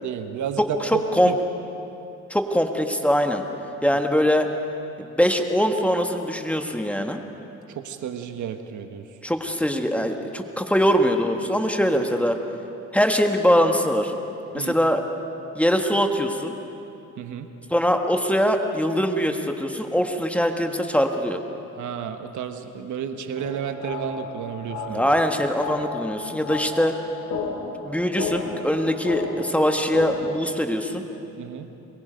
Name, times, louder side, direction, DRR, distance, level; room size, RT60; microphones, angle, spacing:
voice 1, 0.0-1.4 7.7-9.1 14.5-14.7 17.2-17.5 21.7-25.1 31.4-31.7, right 8 dB, 75° right, 7 dB, 1.3 m, -32 dB
voice 2, 0.8-1.3 2.3-3.4 3.8-4.5 5.0-7.2 9.2-12.4 12.9-14.1 14.5-15.0 15.6-16.5 17.7-21.4 24.9-26.9 27.8-31.0, equal, 5° left, 4 dB, 1.6 m, -22 dB
sound 1, 23.4-30.4, left 5 dB, 85° left, 2.4 m, -33 dB
23.0 x 22.0 x 5.2 m, 2.8 s
cardioid pair, 90°, 30 cm